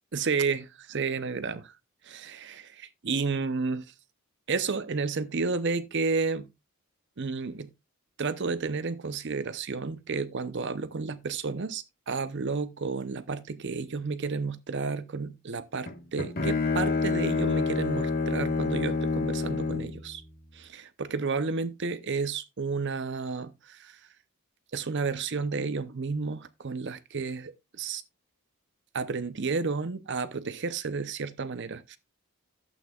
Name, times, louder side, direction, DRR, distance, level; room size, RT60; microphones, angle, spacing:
voice 1, 0.1-1.7 2.0-3.9 4.5-6.5 7.2-7.7 8.2-20.2 20.5-24.0 24.7-28.0 28.9-32.0, right 4 dB, 55° right, 0.7 m, -31 dB
Bowed string instrument, 15.9-20.0, left 4 dB, 45° left, 1.4 m, -28 dB
12.0 x 8.3 x 2.4 m
head